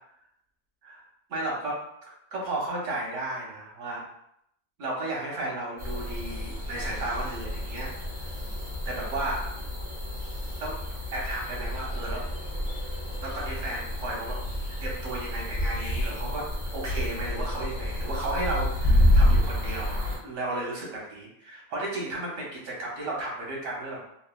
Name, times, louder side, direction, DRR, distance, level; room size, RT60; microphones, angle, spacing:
voice 1, 1.3-4.0 4.8-7.9 8.8-9.5 10.6-10.8 11.1-12.2 13.2-14.4 14.8-24.1, right 2 dB, 90° right, -2 dB, 1.2 m, -34 dB
sound 1, 5.8-20.2, left 1 dB, 60° right, 1.3 m, -34 dB
sound 2, 14.4-14.9 15.4-16.1 16.4-16.5 16.8-20.1, left 1 dB, 65° left, 0.8 m, -24 dB
3.2 x 2.1 x 2.2 m, 0.75 s
omnidirectional pair, 1.2 m